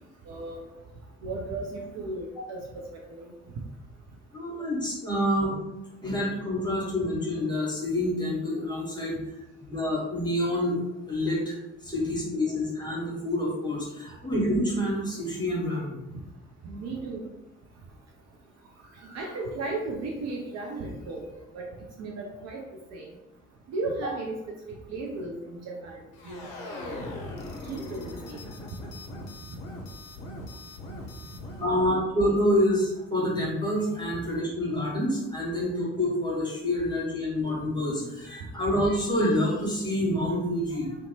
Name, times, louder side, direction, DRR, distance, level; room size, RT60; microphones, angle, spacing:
voice 1, 0.3-0.7 1.2-3.3 16.1-16.2 16.6-17.3 18.9-21.3 21.5-21.7 22.0-22.6 22.9-23.1 23.7-27.0 27.6-28.4 31.6-31.8, right 2 dB, 45° right, 0 dB, 0.5 m, -35 dB
voice 2, 4.3-5.5 6.0-9.2 9.6-10.8 11.1-11.6 11.8-16.0 31.6-41.0, left 1 dB, 10° left, -5 dB, 1.2 m, -27 dB
sound 1, 26.1-31.7, left 2 dB, 60° left, 0.6 m, -40 dB
2.6 x 2.1 x 2.8 m, 0.95 s
figure-of-eight pair, 40°, 37 cm